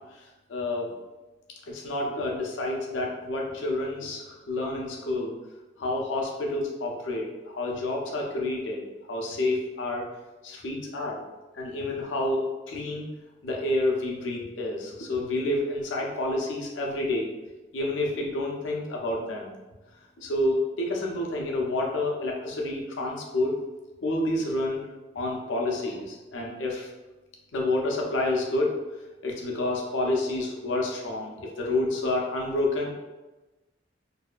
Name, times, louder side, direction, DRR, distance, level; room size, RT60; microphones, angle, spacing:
voice 1, 0.5-0.9 1.7-5.3 5.8-8.8 9.1-10.1 10.4-11.2 11.5-13.1 13.4-17.3 17.7-19.5 20.2-23.5 24.0-24.8 25.1-26.9 27.5-28.8 29.2-32.9, left 2 dB, 90° left, -1 dB, 0.5 m, -29 dB
2.7 x 2.2 x 2.4 m, 1.1 s
head